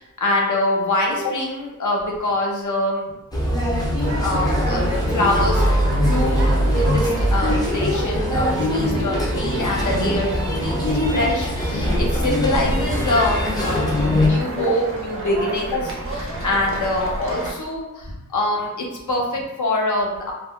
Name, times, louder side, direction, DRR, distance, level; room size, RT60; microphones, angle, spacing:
voice 1, 0.0-3.1 4.2-4.8 5.1-5.6 5.9-6.5 6.8-10.3 10.6-20.3, left 1 dB, 65° left, -1 dB, 0.7 m, -24 dB
sound 1, 3.3-14.3, equal, 10° left, 0.6 m, -21 dB
sound 2, 4.0-17.5, right 2 dB, 40° right, 0.7 m, -31 dB
2.4 x 2.1 x 3.5 m, 1.0 s
wide cardioid pair, 90°, 32 cm